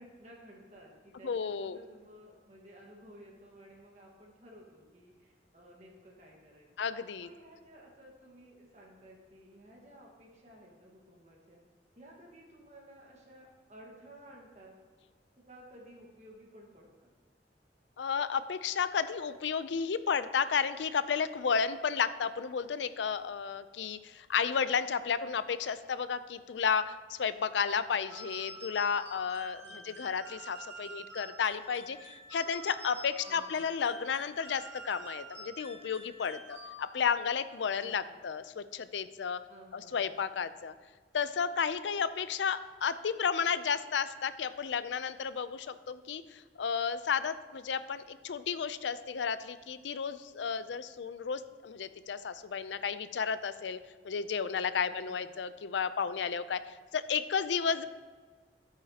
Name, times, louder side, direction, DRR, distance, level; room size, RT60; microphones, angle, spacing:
voice 1, 0.0-6.9 7.2-11.6 11.9-14.8 15.5-17.1 29.6-30.2 33.2-33.7 37.8-38.3 39.5-40.2 54.9-55.4, equal, 40° right, -1 dB, 1.5 m, -55 dB
voice 2, 1.2-1.8 6.8-7.3 18.0-39.4 39.7-40.7 41.1-53.8 54.0-57.8, left 6 dB, 85° left, 13 dB, 0.4 m, -32 dB
sound 1, 28.1-37.1, right 1 dB, 20° right, 2.5 m, -48 dB
12.5 x 8.7 x 2.9 m, 1.5 s
head